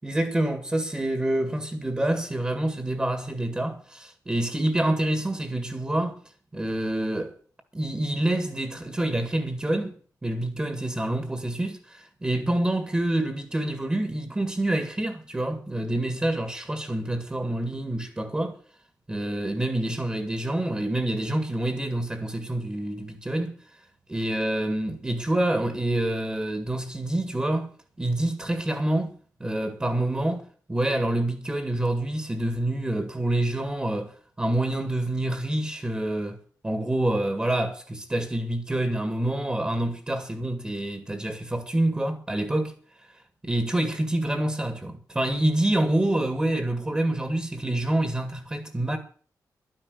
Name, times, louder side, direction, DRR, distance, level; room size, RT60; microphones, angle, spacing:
voice 1, 0.0-6.2 6.5-7.4 7.7-18.6 19.1-23.6 24.1-27.7 28.0-42.7 43.4-49.0, right 1 dB, 20° right, 1.9 m, -27 dB
12.0 x 10.0 x 6.7 m
wide cardioid pair, 120°, 7 cm